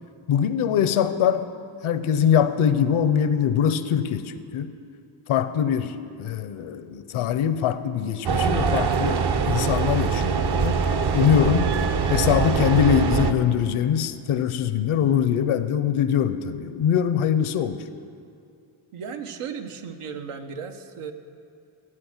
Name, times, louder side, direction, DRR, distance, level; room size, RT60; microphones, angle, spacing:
voice 1, 0.3-1.5 1.8-4.7 5.3-10.8 11.1-11.7 12.1-17.8, left 8 dB, 75° left, 12 dB, 0.7 m, -23 dB
sound 1, 8.2-13.3, right 5 dB, 50° right, 0.8 m, -23 dB
voice 2, 18.9-21.1, right 6 dB, 90° right, 6 dB, 1.1 m, -35 dB
14.5 x 8.7 x 7.2 m, 2.5 s
wide cardioid pair, 125°, 50 cm